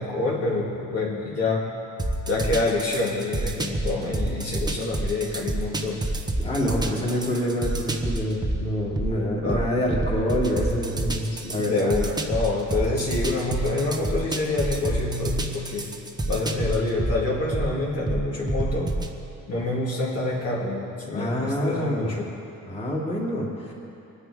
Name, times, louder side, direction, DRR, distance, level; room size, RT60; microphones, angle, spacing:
voice 1, 0.0-1.7 2.3-6.1 9.4-9.7 11.5-15.9 16.3-18.9 19.5-22.3, left 2 dB, 45° left, -4 dB, 2.1 m, -27 dB
sound 1, 2.0-19.1, right 1 dB, 10° right, 0.8 m, -29 dB
voice 2, 6.4-12.0 21.1-22.1 22.7-23.7, equal, 20° left, -4 dB, 2.5 m, -27 dB
24.0 x 9.7 x 4.8 m, 2.7 s
cardioid pair, 175°, 33 cm